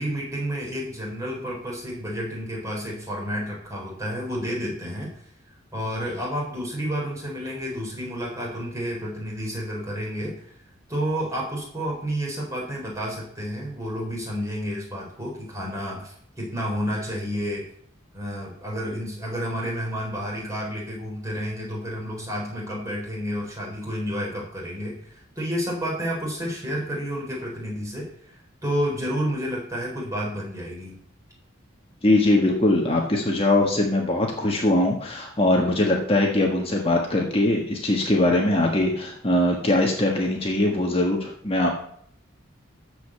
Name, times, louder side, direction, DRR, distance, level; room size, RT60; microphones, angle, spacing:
voice 1, 0.0-5.1 5.7-10.6 10.9-17.6 18.1-28.3 28.6-31.0, equal, 15° right, -3 dB, 4.1 m, -30 dB
voice 2, 32.0-41.7, left 1 dB, 30° left, 0 dB, 1.4 m, -21 dB
13.0 x 5.2 x 7.4 m, 0.65 s
head